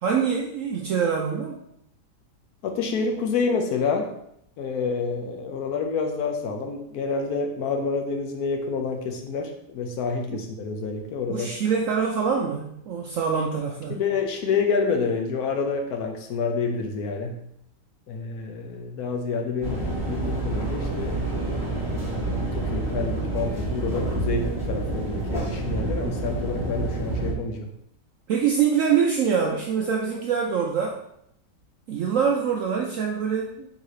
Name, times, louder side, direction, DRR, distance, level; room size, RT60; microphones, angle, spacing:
voice 1, 0.0-1.6 11.3-14.0 28.3-31.0 31.9-33.8, right 6 dB, 75° right, 0 dB, 0.7 m, -24 dB
voice 2, 2.6-4.1 4.6-11.6 13.9-17.4 18.1-21.1 22.1-27.7, left 4 dB, 70° left, 3 dB, 1.0 m, -28 dB
sound 1, 19.6-27.3, right 2 dB, ahead, 1.2 m, -28 dB
3.9 x 2.8 x 4.7 m, 0.75 s
omnidirectional pair, 1.8 m